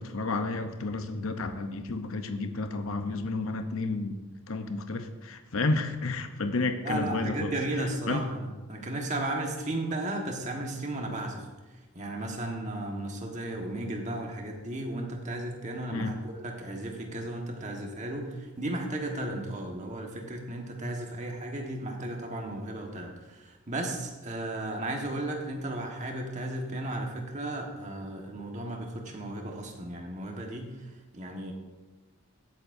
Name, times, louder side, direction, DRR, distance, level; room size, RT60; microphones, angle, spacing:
voice 1, 0.0-7.5 8.1-8.2 15.9-16.1, left 3 dB, 70° left, 7 dB, 0.8 m, -31 dB
voice 2, 6.8-31.5, right 1 dB, 35° right, 1 dB, 1.4 m, -35 dB
17.0 x 8.5 x 2.7 m, 1.2 s
head